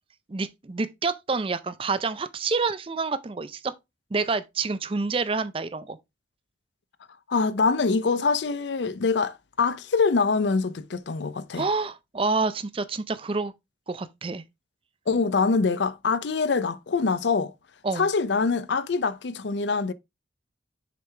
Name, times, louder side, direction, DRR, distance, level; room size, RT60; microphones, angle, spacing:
voice 1, 0.3-3.7 4.1-6.0 11.5-13.5 13.9-14.4 17.8-18.1, right 4 dB, 30° right, 0.4 m, -28 dB
voice 2, 7.3-11.7 15.1-17.5 18.0-19.9, left 4 dB, 75° left, 0.5 m, -24 dB
6.9 x 4.6 x 3.2 m
head